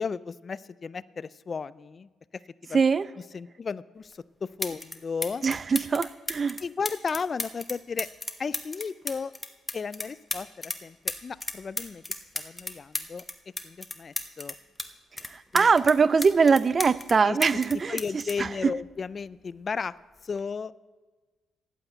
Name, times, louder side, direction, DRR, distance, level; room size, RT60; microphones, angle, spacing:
voice 1, 0.0-2.1 2.6-2.8 3.3-5.4 6.6-8.1 8.4-9.3 9.7-11.0 11.2-12.0 12.3-13.2 13.6-14.5 15.5-15.6 17.2-17.4 17.9-19.9 20.2-20.7, left 5 dB, 40° left, 18 dB, 0.4 m, -34 dB
voice 2, 2.7-3.1 5.4-6.6 15.2-18.0 18.4-18.7, right 5 dB, 35° right, 19 dB, 0.4 m, -22 dB
sound 1, 4.1-4.2 4.6-5.0 5.2-10.8 11.1-14.9 15.2-17.1 17.4-19.2 20.2-20.4, left 2 dB, 10° left, 1.0 m, -34 dB
10.0 x 8.8 x 8.0 m, 1.3 s
cardioid pair, 90°, 0 cm